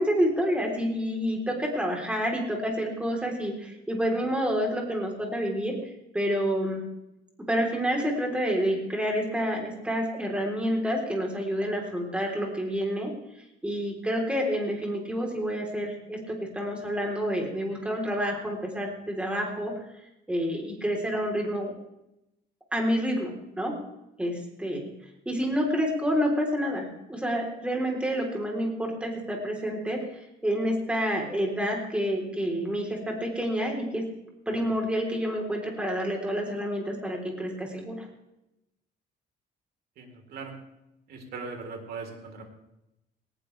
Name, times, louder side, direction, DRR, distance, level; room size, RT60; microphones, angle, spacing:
voice 1, 0.0-5.8 6.1-6.8 7.4-13.1 13.6-19.7 20.3-21.7 22.7-23.7 24.2-24.9 25.3-30.0 30.4-34.1 34.5-38.1, equal, 5° right, 0 dB, 3.8 m, -28 dB
voice 2, 40.0-40.5 41.1-42.4, right 4 dB, 70° right, 3 dB, 4.0 m, -39 dB
19.0 x 19.0 x 3.4 m, 0.88 s
cardioid pair, 160°, 17 cm